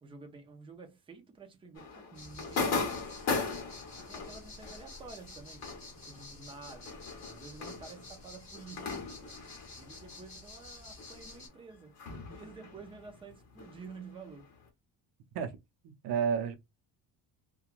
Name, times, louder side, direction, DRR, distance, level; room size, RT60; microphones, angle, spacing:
voice 1, 0.0-3.2 4.0-9.1 9.7-14.5, right 4 dB, 15° right, 0.4 m, -50 dB
sound 1, 1.7-10.7 11.0-14.5, left 4 dB, 40° left, 1.0 m, -39 dB
sound 2, 2.1-11.5, left 2 dB, 15° left, 1.1 m, -50 dB
voice 2, 15.8-16.5, right 7 dB, 70° right, 0.7 m, -31 dB
3.0 x 2.3 x 2.4 m
cardioid pair, 175°, 41 cm